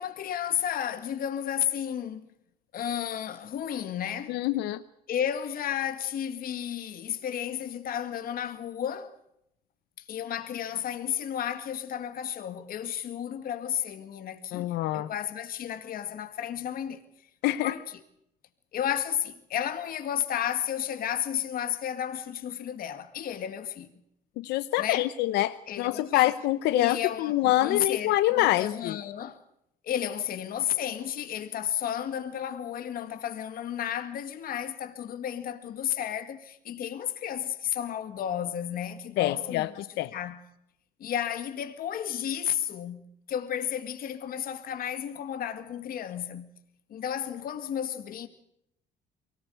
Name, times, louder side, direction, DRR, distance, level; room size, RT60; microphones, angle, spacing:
voice 1, 0.0-2.3 2.7-4.4 5.1-9.2 10.1-17.0 17.6-18.0 18.7-23.9 24.8-25.1 25.7-26.3 26.7-29.4 29.8-40.4 41.0-46.5 46.9-48.3, left 10 dB, 60° left, 2.0 m, -32 dB
voice 2, 4.3-4.8 14.5-15.1 17.4-17.7 24.4-29.0 39.2-39.7 40.0-40.1, left 16 dB, 85° left, 0.8 m, -26 dB
24.0 x 18.5 x 8.0 m
cardioid pair, 110°, 17 cm